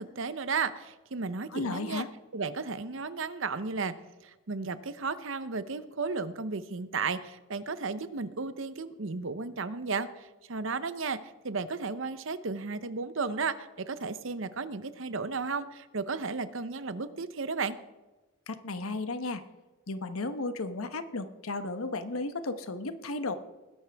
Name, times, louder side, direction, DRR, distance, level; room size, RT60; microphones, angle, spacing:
voice 1, 0.0-2.0 2.3-3.9 4.2-11.2 11.4-17.8, right 4 dB, 65° right, 13 dB, 0.8 m, -34 dB
voice 2, 1.5-2.1 18.5-19.4 19.9-23.4, left 3 dB, 85° left, 10 dB, 1.1 m, -34 dB
20.0 x 11.0 x 3.5 m, 1.1 s
head